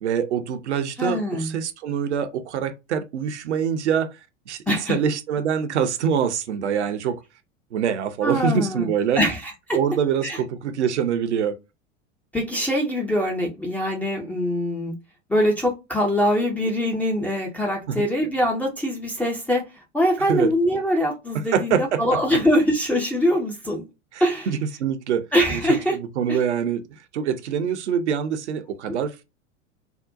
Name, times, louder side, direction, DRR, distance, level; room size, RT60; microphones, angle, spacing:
voice 1, 0.0-4.1 4.5-4.6 4.9-7.2 7.7-9.2 9.7-11.6 17.9-18.0 20.3-20.5 21.5-22.2 24.1-26.8 27.1-29.3, right 7 dB, 65° right, 0.6 m, -25 dB
voice 2, 1.0-1.6 4.7-5.0 8.2-8.9 9.2-9.8 10.2-10.4 12.3-14.9 15.3-19.6 19.9-23.8 24.2-24.5 25.3-26.0 26.3-26.4 28.9-29.0, equal, 5° left, 0.4 m, -23 dB
3.7 x 2.1 x 2.4 m
figure-of-eight pair, 85°, 38 cm